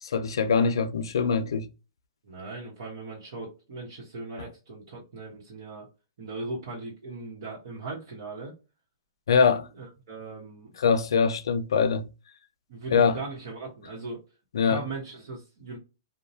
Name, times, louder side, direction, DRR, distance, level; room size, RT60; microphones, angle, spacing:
voice 1, 0.0-1.7 9.3-9.7 10.8-12.1 12.9-13.2 14.5-14.8, left 5 dB, 85° left, 0.5 m, -23 dB
voice 2, 2.2-5.9 6.2-8.5 9.7-10.7 12.7-14.2 14.6-15.8, right 3 dB, 65° right, 1.1 m, -38 dB
2.8 x 2.2 x 2.6 m
hypercardioid pair, 150°, 2 cm